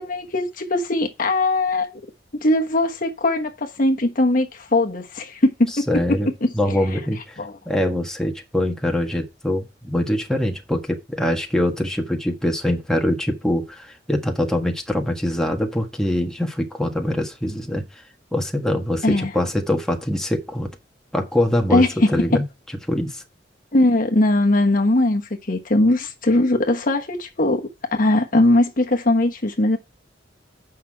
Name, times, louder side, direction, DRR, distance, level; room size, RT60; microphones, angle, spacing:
voice 1, 0.0-1.9 2.3-7.0 7.4-7.5 19.0-19.3 21.7-22.1 23.7-25.2 25.5-29.8, left 1 dB, 50° left, 1.2 m, -20 dB
voice 2, 5.9-7.4 7.6-18.0 18.3-20.7 21.1-21.9 22.1-22.4 22.9-23.2, left 1 dB, 5° left, 1.6 m, -23 dB
8.4 x 5.9 x 4.7 m
head